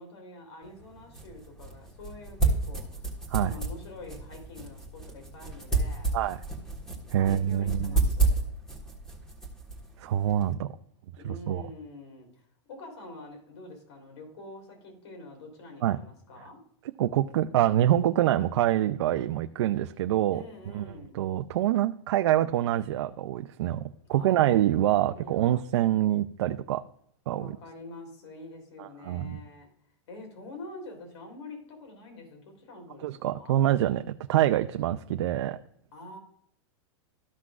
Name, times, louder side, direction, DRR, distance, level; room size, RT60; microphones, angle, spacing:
voice 1, 0.0-3.0 3.4-6.2 7.2-8.5 11.2-12.4 12.7-16.6 20.3-21.3 24.1-24.4 25.1-25.7 27.4-29.7 30.1-33.6 35.9-36.2, left 2 dB, 70° left, 3 dB, 3.4 m, -46 dB
sound 1, 0.6-10.5, right 3 dB, 5° left, 1.5 m, -31 dB
voice 2, 7.1-8.0 10.0-10.7 11.2-11.6 15.8-16.0 17.0-20.4 20.7-20.8 21.1-26.8 27.3-27.6 28.8-29.4 33.0-35.6, right 12 dB, 65° right, 8 dB, 0.5 m, -26 dB
14.0 x 5.9 x 2.4 m, 0.69 s
supercardioid pair, 170°, 15 cm